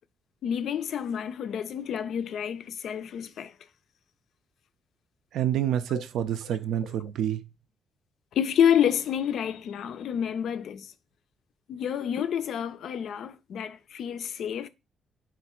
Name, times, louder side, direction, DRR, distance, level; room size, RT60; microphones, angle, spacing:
voice 1, 0.4-3.5 5.9-6.0 8.3-10.9 11.7-14.7, left 9 dB, 70° left, 0.4 m, -28 dB
voice 2, 5.3-7.4, right 10 dB, 75° right, 0.4 m, -28 dB
3.7 x 2.5 x 4.2 m
cardioid pair, 90°, 0 cm